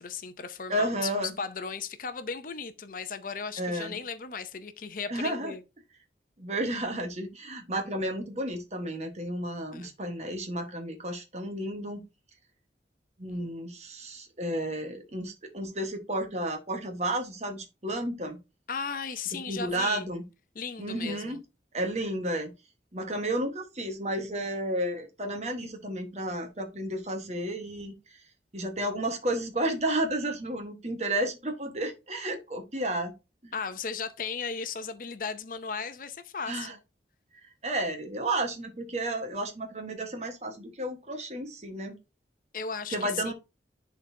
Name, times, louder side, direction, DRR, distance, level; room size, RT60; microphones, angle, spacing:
voice 1, 0.0-1.1 1.4-5.6 9.7-9.9 13.3-13.5 18.7-20.1 20.5-21.4 33.5-36.8 42.5-43.3, left 5 dB, 50° left, 0.6 m, -36 dB
voice 2, 0.7-1.3 3.6-4.0 5.1-5.5 6.4-12.0 13.2-18.4 19.5-20.2 20.8-21.4 21.7-22.5 22.9-28.0 28.5-33.1 33.4-33.5 36.4-36.7 37.6-41.9 42.9-43.3, right 1 dB, 40° right, 1.3 m, -32 dB
10.5 x 4.0 x 2.7 m
head